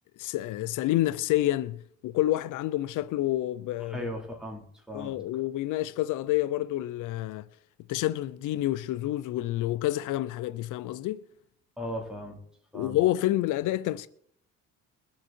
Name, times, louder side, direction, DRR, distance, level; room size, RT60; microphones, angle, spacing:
voice 1, 0.2-1.8 2.0-4.1 4.9-7.5 7.9-11.2 12.7-14.1, left 15 dB, 90° left, 0.6 m, -28 dB
voice 2, 3.9-5.2 11.8-12.4 12.7-13.0, equal, ahead, 4.3 m, -37 dB
22.0 x 7.4 x 4.5 m
cardioid pair, 90°, 30 cm